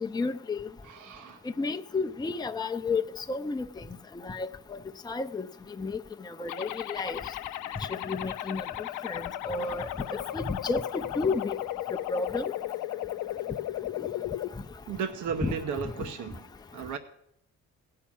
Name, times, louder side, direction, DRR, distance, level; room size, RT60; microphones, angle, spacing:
voice 1, 0.0-0.7 1.6-3.0 3.3-3.6 4.2-4.5 5.1-5.5 5.8-6.0 6.3-7.2 8.0-8.6 9.0-11.6 11.9-12.5 15.4-15.5, left 3 dB, 15° left, 0.6 m, -31 dB
voice 2, 0.8-1.5 9.6-9.8 14.9-17.0, right 6 dB, 80° right, 1.0 m, -35 dB
sound 1, 6.5-14.5, left 13 dB, 90° left, 0.6 m, -35 dB
17.0 x 5.7 x 8.7 m
cardioid pair, 90°, 30 cm